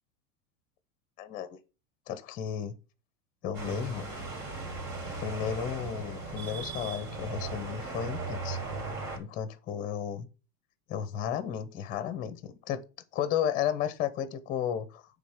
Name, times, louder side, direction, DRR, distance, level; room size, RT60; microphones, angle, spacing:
voice 1, 1.2-1.6 2.1-2.8 3.4-4.1 5.0-8.6 9.2-10.3 10.9-12.8 13.1-15.0, left 9 dB, 20° left, 0.7 m, -33 dB
sound 1, 3.5-9.2, right 3 dB, 55° right, 3.6 m, -37 dB
9.2 x 3.7 x 6.4 m
supercardioid pair, 170°, 44 cm